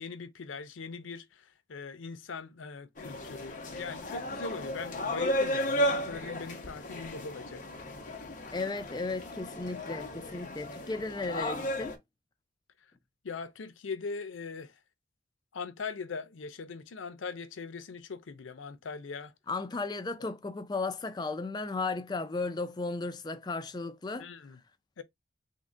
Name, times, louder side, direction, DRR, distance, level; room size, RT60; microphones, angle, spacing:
voice 1, 0.0-7.6 13.2-14.8 15.5-19.3 24.2-24.6 25.0-25.1, left 4 dB, 85° left, 0.5 m, -41 dB
sound 1, 3.0-12.0, equal, 40° left, 0.7 m, -34 dB
voice 2, 8.5-12.0 19.5-24.3, left 3 dB, 20° left, 0.3 m, -35 dB
3.7 x 2.1 x 3.6 m
head